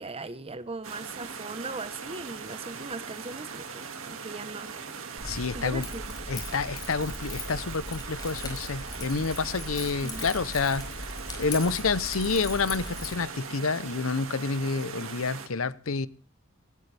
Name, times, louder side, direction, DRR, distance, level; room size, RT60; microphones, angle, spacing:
voice 1, 0.0-4.7 5.5-6.2 10.0-10.2, right 3 dB, 30° right, 1.1 m, -39 dB
sound 1, 0.8-15.5, right 5 dB, 80° right, 2.2 m, -40 dB
voice 2, 5.2-5.9 6.3-10.8 11.4-16.1, left 4 dB, 90° left, 0.8 m, -28 dB
Keys jangling, 5.2-13.2, left 2 dB, 20° left, 4.7 m, -39 dB
18.0 x 17.5 x 3.4 m
head